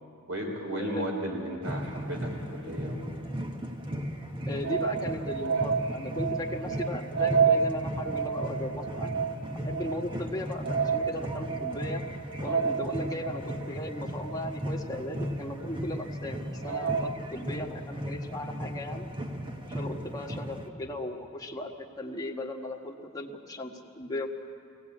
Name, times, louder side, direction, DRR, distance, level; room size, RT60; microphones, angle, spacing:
voice 1, 0.3-3.0, right 1 dB, 85° right, 1 dB, 3.9 m, -34 dB
sound 1, 1.6-20.7, equal, 25° right, 1.2 m, -36 dB
voice 2, 4.5-9.1 9.6-12.0 12.4-19.1 19.7-24.3, left 1 dB, 20° left, 1 dB, 1.4 m, -37 dB
sound 2, 4.6-15.5 15.9-16.0 16.6-17.1, right 6 dB, 65° right, 1.2 m, -30 dB
23.5 x 17.5 x 8.6 m, 2.5 s
head